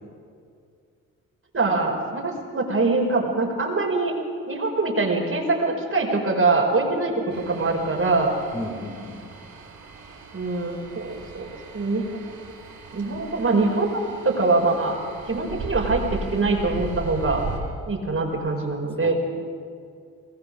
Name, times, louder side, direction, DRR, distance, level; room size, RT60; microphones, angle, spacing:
voice 1, 1.5-4.1 4.5-8.3 10.3-11.5 11.7-12.1 12.9-15.0 15.3-17.4 17.9-19.1, right 3 dB, 35° right, 0 dB, 5.3 m, -23 dB
sound 1, 7.3-17.6, right 4 dB, 60° right, 5.4 m, -37 dB
voice 2, 8.5-9.3 19.0-19.1, left 1 dB, 15° left, -2 dB, 5.2 m, -34 dB
22.0 x 20.5 x 6.7 m, 2.3 s
hypercardioid pair, 45°, 39 cm